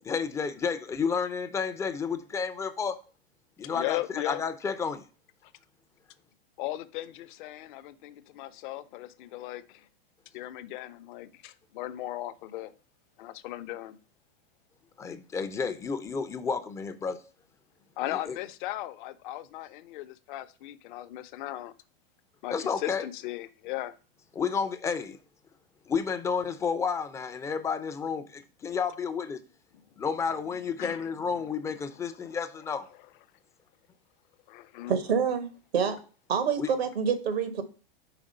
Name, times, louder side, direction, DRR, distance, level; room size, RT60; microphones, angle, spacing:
voice 1, 0.1-3.0 3.6-5.1 15.0-17.2 18.1-18.4 22.5-23.1 24.4-25.2 25.9-29.4 30.0-32.9 36.6-36.7, left 6 dB, 10° left, 0.3 m, -31 dB
voice 2, 3.7-4.4 6.6-9.9 10.3-12.7 13.2-14.0 18.0-21.7 22.4-24.0 30.8-31.0 34.5-35.0, left 15 dB, 55° left, 0.6 m, -37 dB
voice 3, 34.9-35.4 35.7-36.0 36.3-37.6, right 6 dB, 90° right, 1.2 m, -26 dB
5.0 x 3.6 x 5.3 m
hypercardioid pair, 125°, 30 cm